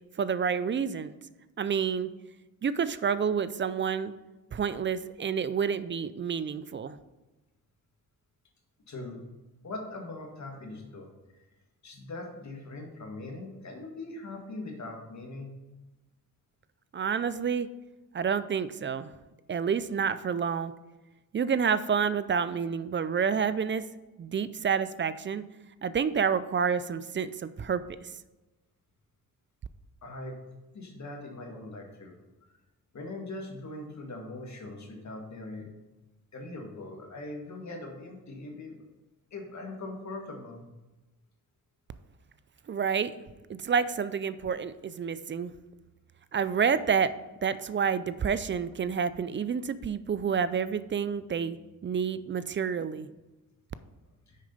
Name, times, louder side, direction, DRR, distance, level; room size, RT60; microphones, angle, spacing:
voice 1, 0.2-1.1 1.6-2.1 2.6-4.1 4.5-7.0 16.9-17.7 18.1-19.1 19.5-20.7 21.3-23.8 24.2-25.4 25.8-28.1 42.7-43.2 43.5-45.5 46.3-47.1 47.4-51.6 51.8-53.1, right 6 dB, 35° right, 14 dB, 0.4 m, -29 dB
voice 2, 8.9-9.2 9.6-11.1 11.8-15.5 30.0-32.2 32.9-35.7 36.3-38.8 39.3-40.6 54.3-54.4, left 2 dB, 50° left, 1 dB, 1.9 m, -41 dB
6.5 x 4.9 x 5.4 m, 1.1 s
cardioid pair, 85°, 36 cm